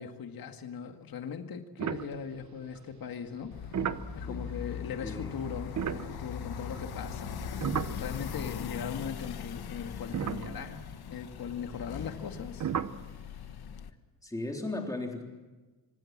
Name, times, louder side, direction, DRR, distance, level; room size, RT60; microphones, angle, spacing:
voice 1, 0.0-3.6 4.1-12.7, left 7 dB, 70° left, 6 dB, 2.1 m, -40 dB
sound 1, 1.8-2.8 3.4-8.7 8.9-9.1 9.7-9.8 10.1-11.2 12.6-13.1, right 8 dB, 50° right, 0.9 m, -36 dB
sound 2, 3.5-13.9, left 8 dB, 90° left, 1.5 m, -40 dB
voice 2, 5.0-5.3 14.2-15.2, left 2 dB, 10° left, 1 dB, 3.5 m, -36 dB
26.0 x 26.0 x 7.5 m, 1.2 s
wide cardioid pair, 175°, 37 cm